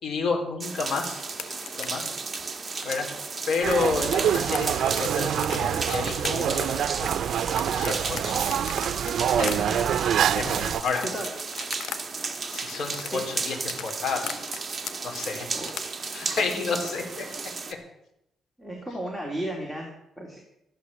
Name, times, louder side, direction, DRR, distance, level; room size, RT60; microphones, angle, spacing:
voice 1, 0.0-1.2 1.8-2.1 2.8-3.1 3.5-6.7 7.0-7.1 7.7-8.4 9.4-9.8 10.3-11.0 12.5-14.4 15.0-15.5 16.1-17.2, left 4 dB, 60° left, 1 dB, 4.3 m, -30 dB
sound 1, 0.6-17.7, right 4 dB, 25° right, 1.5 m, -34 dB
sound 2, 1.3-12.0 12.2-16.1, left 8 dB, 85° left, 1.4 m, -39 dB
sound 3, 3.6-10.8, right 9 dB, 65° right, 0.6 m, -26 dB
voice 2, 9.5-10.5 11.0-11.3 13.0-13.2 15.5-15.7 16.5-16.8 18.6-20.4, right 1 dB, 5° left, -1 dB, 2.9 m, -36 dB
14.0 x 11.5 x 7.2 m, 0.81 s
cardioid pair, 140°, 0 cm